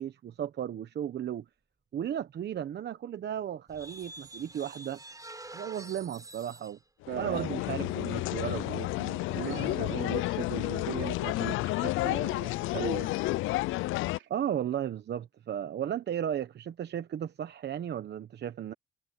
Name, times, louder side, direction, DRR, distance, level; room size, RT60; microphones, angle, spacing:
voice 1, 0.0-1.5 1.9-5.0 5.5-6.8 7.2-9.9 14.3-18.7, right 10 dB, 60° right, 1.1 m, -35 dB
sound 1, 3.7-6.8, right 2 dB, 15° right, 7.5 m, -47 dB
sound 2, 7.1-14.2, left 19 dB, 90° left, 0.4 m, -31 dB
voice 2, 7.1-7.5 9.3-13.1 14.1-14.3, right 11 dB, 75° right, 3.0 m, -38 dB
cardioid pair, 90°, 20 cm